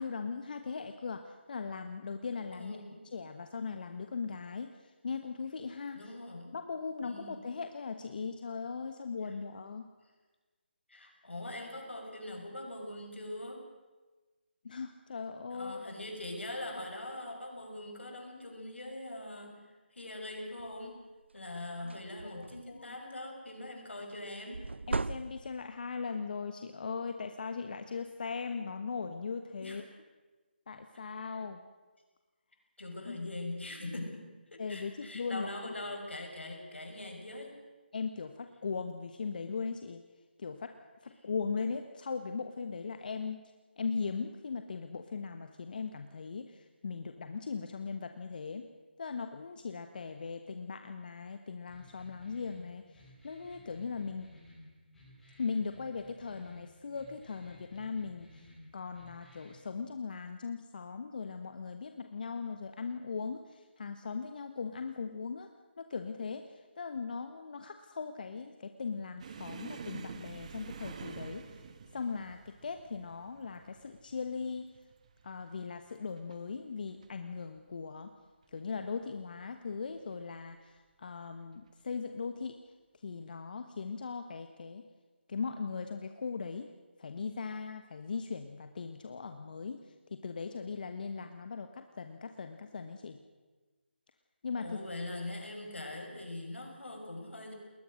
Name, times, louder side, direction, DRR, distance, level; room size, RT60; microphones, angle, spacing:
voice 1, 0.0-2.8 3.1-6.1 6.5-9.9 14.6-15.8 21.8-21.9 22.2-22.9 24.9-29.8 30.7-31.6 33.0-33.2 34.6-35.7 37.9-40.0 40.4-40.7 41.0-43.4 43.8-48.7 49.0-54.3 55.4-65.5 65.8-71.4 71.9-74.7 75.2-78.1 78.5-82.6 83.0-84.8 85.3-86.7 87.0-89.8 90.1-93.2 94.4-94.8, left 5 dB, 50° left, 7 dB, 1.2 m, -39 dB
voice 2, 2.5-3.0 5.9-6.6 7.0-7.5 9.2-9.3 10.9-13.7 15.5-21.0 21.3-24.7 29.6-29.8 31.2-31.4 32.8-34.2 34.5-37.6 94.6-97.5, left 1 dB, 85° left, 2 dB, 6.2 m, -42 dB
sound 1, 20.6-20.9 21.3-21.5 21.7-22.9 24.5-25.8, right 3 dB, 85° right, 0.7 m, -37 dB
sound 2, 51.7-59.7, left 1 dB, 5° left, 7.0 m, -56 dB
sound 3, 69.2-76.4 76.7-77.1 77.4-77.6 78.4-79.0 80.0-80.2 81.5-81.7, right 5 dB, 40° right, 1.5 m, -48 dB
21.0 x 20.0 x 6.5 m, 1.3 s
figure-of-eight pair, 160°, 6 cm